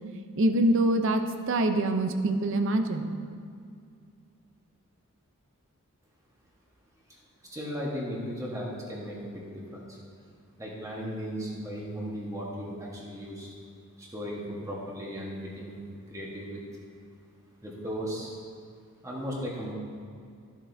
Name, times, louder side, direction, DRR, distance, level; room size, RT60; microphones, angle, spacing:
voice 1, 0.4-3.1, right 1 dB, 55° right, 7 dB, 0.6 m, -25 dB
voice 2, 7.4-10.0 10.6-13.6 14.0-15.8 16.1-16.6 17.6-18.4 19.0-19.7, equal, 15° right, -4 dB, 1.2 m, -36 dB
12.5 x 7.4 x 2.6 m, 2.3 s
head